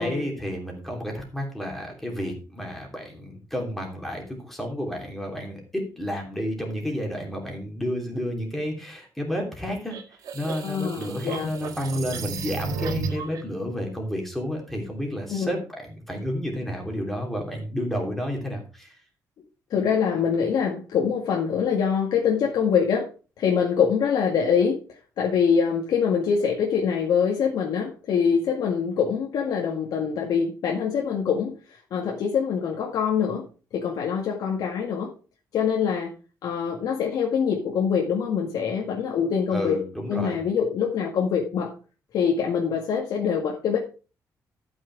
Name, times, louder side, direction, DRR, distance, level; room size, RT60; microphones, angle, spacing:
voice 1, 0.0-10.0 10.3-19.0 39.5-40.4, equal, 5° left, 1 dB, 3.2 m, -31 dB
sound 1, 9.9-13.4, right 4 dB, 70° right, 1.8 m, -33 dB
voice 2, 10.6-11.5 15.3-15.5 19.7-23.1 23.4-33.5 33.7-35.1 35.5-36.1 36.4-39.8 40.1-41.7 42.1-43.8, left 7 dB, 75° left, 0 dB, 1.9 m, -24 dB
12.5 x 6.3 x 4.6 m, 0.34 s
cardioid pair, 155°, 7 cm